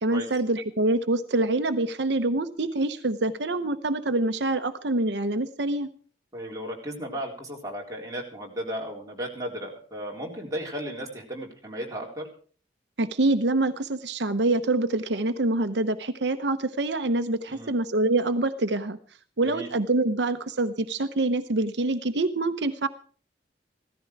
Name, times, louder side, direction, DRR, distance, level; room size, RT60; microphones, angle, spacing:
voice 1, 0.0-5.9 13.0-19.0 19.4-22.9, right 2 dB, 80° right, 9 dB, 0.9 m, -25 dB
voice 2, 6.3-12.3 17.5-17.7 19.4-19.7, equal, 20° right, -1 dB, 4.0 m, -35 dB
16.5 x 14.0 x 4.7 m, 0.43 s
head